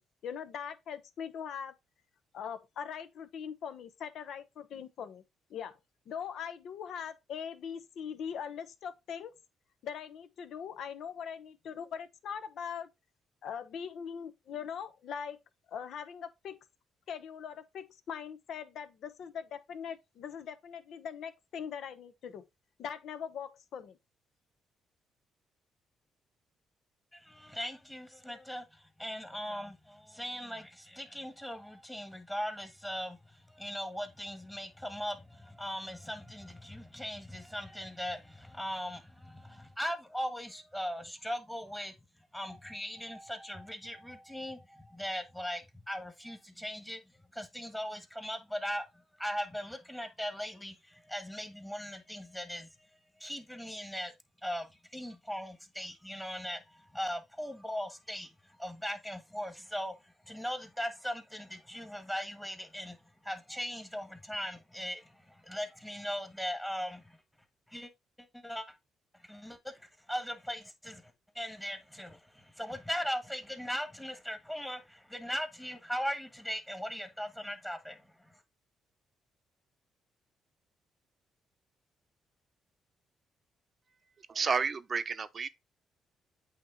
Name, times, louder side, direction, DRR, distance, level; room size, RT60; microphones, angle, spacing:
voice 1, 0.0-1.7 2.3-5.2 5.5-5.8 6.1-9.4 9.8-12.9 13.4-15.4 15.7-16.6 17.1-22.4 22.8-24.0, left 7 dB, 70° left, 0.9 m, -41 dB
voice 2, 27.1-52.9 53.2-54.1 54.4-67.2 67.7-67.9 68.2-68.8 69.1-78.4, equal, 10° left, 1.5 m, -39 dB
voice 3, 84.3-85.5, right 5 dB, 40° right, 0.7 m, -31 dB
8.5 x 3.0 x 4.1 m
cardioid pair, 90°, 0 cm